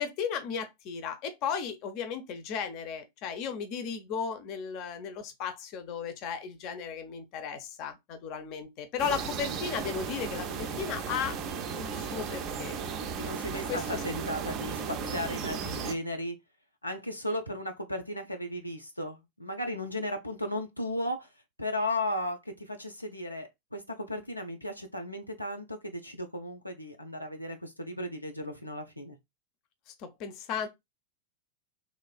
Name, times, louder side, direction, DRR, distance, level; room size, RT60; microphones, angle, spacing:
voice 1, 0.0-11.4 11.8-12.7 13.7-14.0 30.0-30.7, left 7 dB, 40° left, 0.6 m, -35 dB
sound 1, 9.0-15.9, right 6 dB, 35° right, 0.4 m, -35 dB
voice 2, 13.2-16.3 16.8-21.3 21.6-29.2, left 1 dB, 85° left, 0.4 m, -35 dB
3.1 x 2.4 x 2.2 m
figure-of-eight pair, 90°, 0 cm